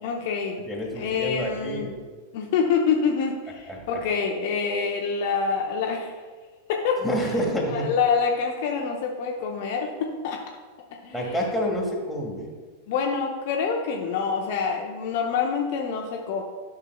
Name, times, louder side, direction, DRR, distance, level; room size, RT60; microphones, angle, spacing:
voice 1, 0.0-0.6 1.0-1.9 2.3-6.1 6.7-7.0 7.7-10.4 11.0-11.4 12.9-16.4, left 5 dB, 50° left, 1 dB, 0.7 m, -26 dB
voice 2, 0.7-1.9 3.7-4.0 7.0-7.9 11.1-12.5, equal, ahead, -3 dB, 1.7 m, -28 dB
10.5 x 5.8 x 2.3 m, 1.4 s
figure-of-eight pair, 90°, 0 cm